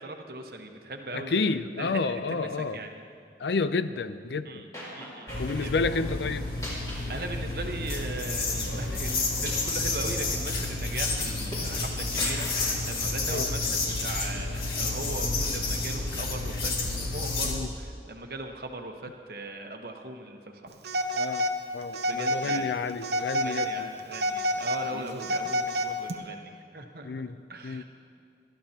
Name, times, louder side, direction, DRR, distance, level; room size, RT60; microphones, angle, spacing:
voice 1, 0.0-3.0 4.4-4.7 4.9-5.3 5.6-5.7 7.1-20.7 22.1-22.8 23.4-27.1 27.5-27.8, right 2 dB, 55° right, 4 dB, 1.1 m, -39 dB
voice 2, 1.1-2.8 3.4-4.6 5.4-6.5 13.3-13.5 17.4-17.7 21.1-21.4 21.7-23.9 27.0-27.4 27.6-27.8, left 4 dB, 75° left, 12 dB, 0.5 m, -30 dB
sound 1, 4.7-5.7 6.4-8.5 8.8-11.9 12.2-13.0 14.2-14.7, equal, 20° left, 3.0 m, -42 dB
sound 2, 5.3-17.5, left 3 dB, 60° left, 1.9 m, -30 dB
Telephone, 20.8-21.6 21.9-22.7 23.0-23.7 24.1-26.1, equal, 75° right, 0.8 m, -28 dB
21.0 x 12.5 x 2.9 m, 2.4 s
head